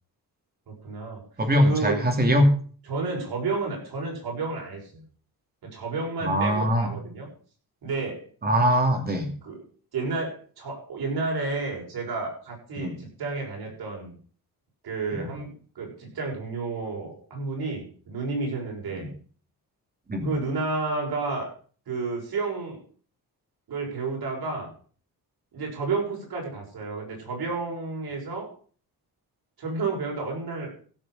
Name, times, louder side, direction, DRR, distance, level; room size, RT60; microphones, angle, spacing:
voice 1, 0.7-1.2 1.6-2.0 2.9-5.0 5.6-7.3 7.8-8.2 9.4-9.6 9.9-14.1 14.8-19.1 20.2-21.5 21.9-22.8 23.7-24.7 25.5-28.5 29.6-30.7, right 3 dB, 75° right, 0 dB, 6.7 m, -31 dB
voice 2, 1.4-2.5 6.2-6.9 8.4-9.3 12.8-13.0 15.1-15.3 18.9-19.1 20.1-20.3, equal, 25° right, 4 dB, 2.6 m, -22 dB
16.0 x 6.8 x 6.4 m, 0.43 s
wide cardioid pair, 145°, 38 cm